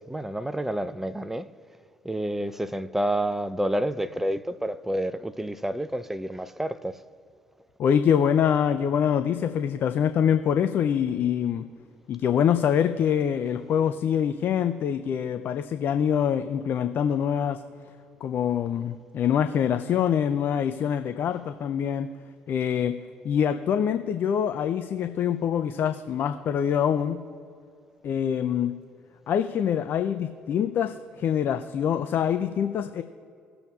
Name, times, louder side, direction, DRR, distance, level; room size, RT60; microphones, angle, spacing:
voice 1, 0.0-1.5 2.0-7.0, right 1 dB, 5° right, 0.5 m, -29 dB
voice 2, 7.8-11.7 12.1-17.6 18.2-22.1 22.5-23.0 23.2-27.2 28.0-28.8 29.3-33.0, left 8 dB, 50° left, 0.4 m, -25 dB
18.5 x 6.9 x 2.4 m
hypercardioid pair, 55°, 4 cm